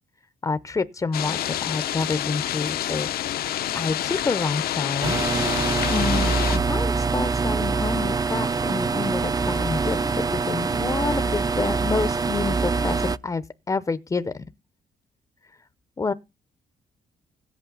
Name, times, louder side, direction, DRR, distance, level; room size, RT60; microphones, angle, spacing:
voice 1, 0.4-3.1 3.7-5.2 5.9-14.4 16.0-16.1, left 4 dB, 20° left, 0.6 m, -28 dB
sound 1, 1.1-6.6, left 12 dB, 80° left, 0.8 m, -27 dB
sound 2, 5.0-13.2, right 4 dB, 25° right, 0.5 m, -24 dB
16.5 x 8.3 x 3.9 m
cardioid pair, 110°, 15 cm